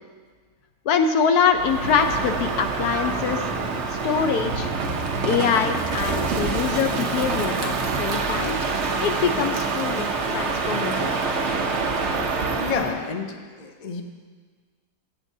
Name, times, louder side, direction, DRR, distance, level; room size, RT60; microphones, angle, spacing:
voice 1, 0.8-3.4 4.0-4.7 5.2-8.6 9.0-11.1, left 7 dB, 80° left, 7 dB, 1.2 m, -24 dB
Crow, 1.5-13.0, right 4 dB, 55° right, 1.0 m, -26 dB
voice 2, 12.6-14.0, left 4 dB, 40° left, 4 dB, 0.5 m, -29 dB
15.5 x 8.7 x 2.7 m, 1.6 s
omnidirectional pair, 1.7 m